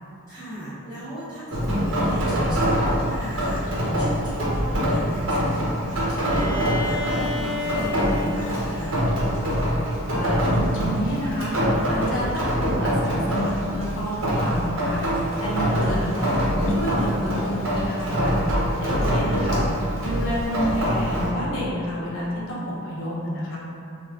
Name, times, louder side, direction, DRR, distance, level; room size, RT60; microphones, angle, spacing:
voice 1, 0.3-9.0 18.9-19.2, right 1 dB, 15° left, -18 dB, 1.1 m, -36 dB
Rain, 1.5-21.3, equal, 60° right, 0.7 m, -24 dB
Bowed string instrument, 6.2-10.0, left 3 dB, 25° right, 0.3 m, -32 dB
voice 2, 10.1-15.0 15.4-16.3 16.7-18.4 18.8-19.7 20.0-23.6, equal, 60° left, -5 dB, 0.7 m, -29 dB
3.2 x 2.3 x 3.5 m, 2.6 s
head